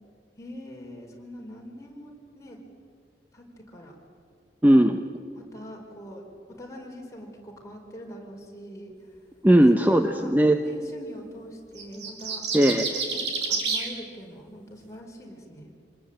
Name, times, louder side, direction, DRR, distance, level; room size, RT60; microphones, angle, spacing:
voice 1, 0.4-2.6 3.3-4.0 5.3-8.9 9.8-10.3 10.6-12.4 13.1-15.7, equal, 20° left, -1 dB, 5.2 m, -43 dB
voice 2, 4.6-5.0 9.4-10.6 12.5-13.0, right 1 dB, 10° right, 6 dB, 0.9 m, -18 dB
sound 1, 11.8-13.9, right 5 dB, 80° right, 4.1 m, -28 dB
26.5 x 20.0 x 9.0 m, 2.2 s
head